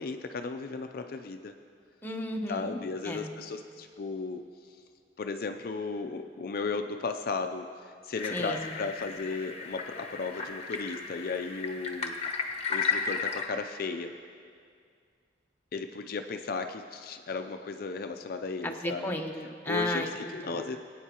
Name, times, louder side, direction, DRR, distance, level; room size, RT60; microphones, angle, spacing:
voice 1, 0.0-1.5 2.5-4.4 5.2-12.2 12.7-14.1 15.7-19.1 19.7-20.8, left 4 dB, 55° left, 6 dB, 0.4 m, -35 dB
voice 2, 2.0-2.8 3.0-3.3 8.3-8.7 18.6-20.6, left 1 dB, 10° left, 1 dB, 0.9 m, -34 dB
sound 1, 8.1-13.5, left 5 dB, 40° left, 0.9 m, -34 dB
22.0 x 9.0 x 2.9 m, 2.2 s
head